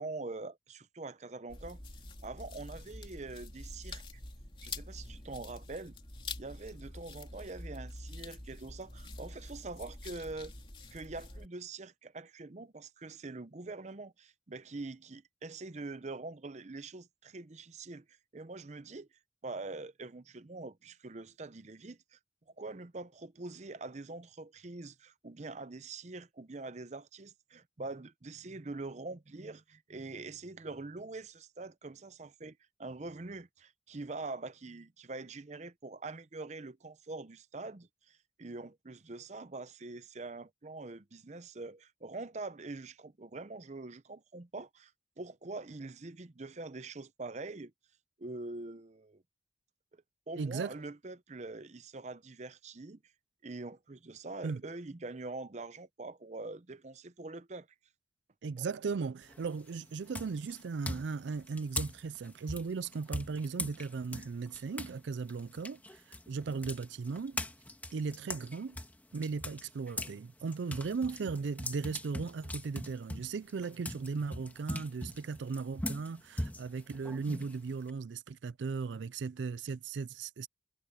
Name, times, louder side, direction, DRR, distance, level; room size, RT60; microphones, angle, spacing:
voice 1, 0.0-1.8 2.2-4.2 4.6-5.9 6.4-10.5 10.9-18.0 18.3-19.1 19.4-22.2 22.6-44.9 45.2-47.7 48.2-49.2 49.9-53.0 53.4-57.7 58.6-58.7 68.5-68.6, right 3 dB, 40° right, 0.7 m, -44 dB
sound 1, 1.5-11.5, left 2 dB, 30° left, 3.2 m, -46 dB
voice 2, 50.4-50.8 54.4-54.6 58.4-67.4 67.9-68.8 69.1-80.5, right 4 dB, 80° right, 0.4 m, -37 dB
sound 2, 59.2-59.6 60.1-65.0 65.3-70.2 70.5-77.9, left 1 dB, 10° left, 1.8 m, -40 dB
head